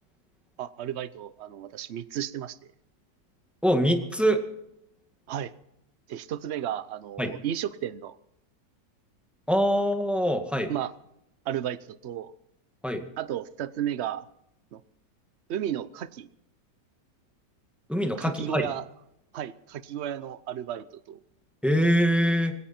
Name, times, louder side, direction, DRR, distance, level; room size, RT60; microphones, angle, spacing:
voice 1, 0.6-2.7 5.3-5.5 6.1-8.2 10.7-10.9 11.5-12.3 13.2-14.3 14.7-14.8 15.5-16.3 18.2-18.9 19.3-21.2, right 10 dB, 55° right, 15 dB, 0.8 m, -33 dB
voice 2, 3.6-4.4 7.2-7.3 9.5-10.7 12.8-13.0 17.9-18.7 21.6-22.5, equal, ahead, 4 dB, 1.7 m, -24 dB
19.0 x 17.0 x 4.4 m, 0.80 s
omnidirectional pair, 1.9 m